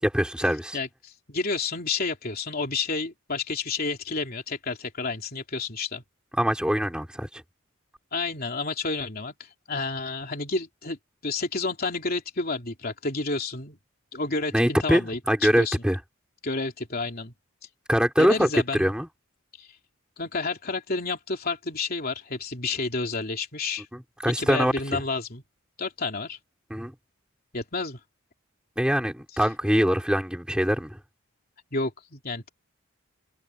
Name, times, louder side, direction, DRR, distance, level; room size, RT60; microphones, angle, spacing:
voice 1, 0.0-0.8 6.4-7.3 14.5-16.0 17.9-19.1 24.2-25.0 26.7-26.9 28.8-31.0, equal, 5° right, 6.5 m, -23 dB
voice 2, 0.7-6.0 8.1-13.8 14.1-15.8 16.4-17.3 18.2-18.9 19.6-19.8 20.2-23.9 24.2-25.4 25.8-26.4 27.5-28.0 29.3-29.5 31.7-32.5, left 3 dB, 45° left, 3.3 m, -30 dB
head